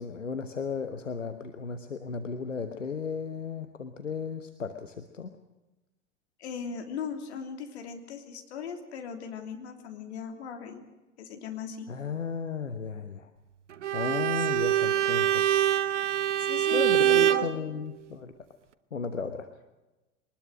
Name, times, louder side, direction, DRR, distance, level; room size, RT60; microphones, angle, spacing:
voice 1, 0.0-5.4 11.9-13.3 13.9-15.6 16.7-18.3 18.9-19.5, left 5 dB, 80° left, 8 dB, 1.3 m, -35 dB
voice 2, 6.4-10.8 11.2-11.9 16.4-17.5, left 6 dB, 60° left, 4 dB, 3.1 m, -38 dB
Bowed string instrument, 13.8-17.5, right 11 dB, 70° right, 1.0 m, -24 dB
22.5 x 20.0 x 6.4 m, 1.1 s
figure-of-eight pair, 85°, 37 cm